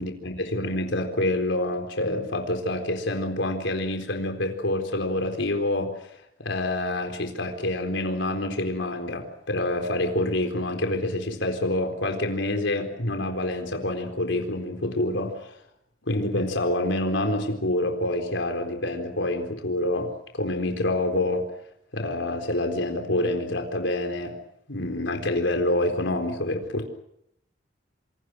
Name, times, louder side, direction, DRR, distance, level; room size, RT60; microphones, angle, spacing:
voice 1, 0.0-6.1 6.4-15.5 16.1-21.5 21.9-24.3 24.7-26.9, left 1 dB, 75° left, 5 dB, 4.1 m, -27 dB
28.0 x 27.5 x 6.3 m, 0.79 s
head